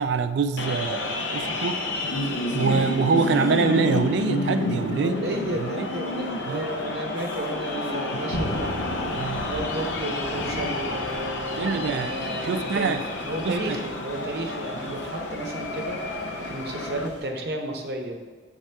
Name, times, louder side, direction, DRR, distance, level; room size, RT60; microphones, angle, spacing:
voice 1, 0.0-1.8 2.5-5.2 5.6-5.9 6.5-6.7 8.1-8.2 9.1-9.5 11.6-13.0 13.4-13.8, right 5 dB, 75° right, 10 dB, 0.3 m, -25 dB
sound 1, 0.6-17.1, left 2 dB, 90° left, 0.6 m, -30 dB
voice 2, 5.0-8.8 9.5-16.2 16.5-18.2, right 1 dB, 60° right, 2 dB, 0.7 m, -33 dB
sound 2, 8.3-17.3, left 1 dB, 70° left, 1.1 m, -37 dB
7.7 x 3.7 x 3.3 m, 1.5 s
head